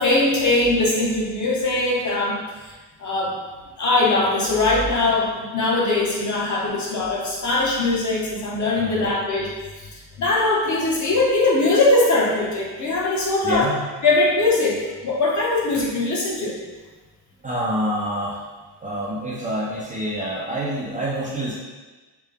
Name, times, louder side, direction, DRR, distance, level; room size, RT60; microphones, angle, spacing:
voice 1, 0.0-2.7 3.0-3.3 3.8-9.5 9.8-13.7 14.0-16.6, left 2 dB, 40° left, -4 dB, 0.8 m, -21 dB
voice 2, 8.8-9.2 13.4-13.8 17.4-18.4 18.8-21.5, equal, 20° right, -7 dB, 0.4 m, -27 dB
3.4 x 2.1 x 3.6 m, 1.3 s
cardioid pair, 140°, 43 cm